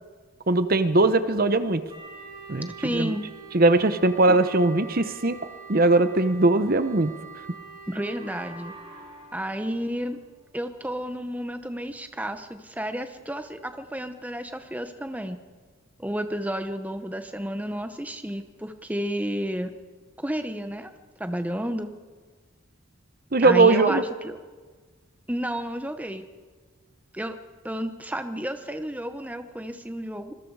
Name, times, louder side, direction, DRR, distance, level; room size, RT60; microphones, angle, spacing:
voice 1, 0.5-1.8 2.5-2.7 2.9-3.1 3.5-5.4 5.7-7.1 23.3-24.0, right 2 dB, 40° right, 11 dB, 0.8 m, -20 dB
sound 1, 1.9-9.9, right 4 dB, 25° right, 7.9 m, -44 dB
voice 2, 2.8-3.2 4.3-4.4 7.9-8.7 9.3-10.2 10.5-15.4 16.0-19.7 20.2-20.9 21.2-21.9 23.4-24.3 25.3-26.2 27.1-27.4 27.6-30.3, equal, 5° right, 8 dB, 0.9 m, -31 dB
26.5 x 21.5 x 4.8 m, 1.5 s
head